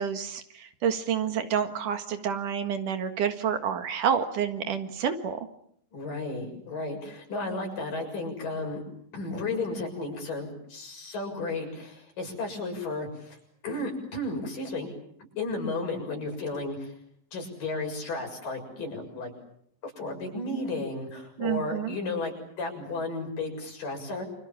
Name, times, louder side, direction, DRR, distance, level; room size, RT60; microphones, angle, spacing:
voice 1, 0.0-5.4 21.4-22.0, right 8 dB, 65° right, 8 dB, 3.2 m, -29 dB
voice 2, 5.9-8.8 9.1-13.4 13.6-14.9 15.4-16.9 17.3-19.3 19.8-24.2, left 2 dB, 70° left, 2 dB, 8.5 m, -33 dB
29.0 x 27.0 x 7.4 m, 0.69 s
omnidirectional pair, 4.0 m